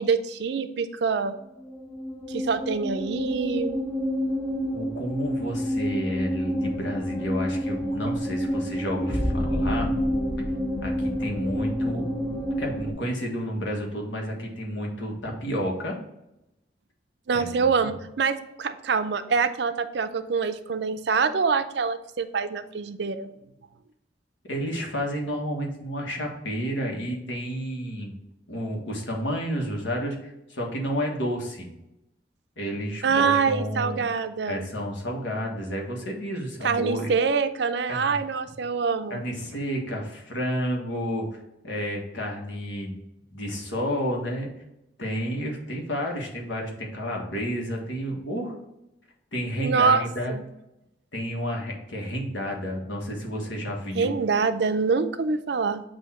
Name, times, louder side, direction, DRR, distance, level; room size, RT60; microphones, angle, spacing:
voice 1, 0.0-1.3 2.3-3.7 7.9-8.0 17.3-23.3 33.0-34.7 36.6-39.2 49.6-50.4 53.9-55.8, right 5 dB, 65° right, 10 dB, 0.4 m, -25 dB
sound 1, 1.6-12.9, equal, 15° left, 0.4 m, -28 dB
voice 2, 4.7-9.9 10.8-12.1 12.6-15.9 17.3-17.9 24.5-28.1 28.5-31.7 32.6-34.0 34.5-37.1 37.9-38.2 39.1-41.4 41.6-43.0 43.3-44.5 45.0-48.5 49.3-50.3 51.1-54.1, equal, 80° left, 0 dB, 1.5 m, -31 dB
8.0 x 2.7 x 4.3 m, 0.89 s
head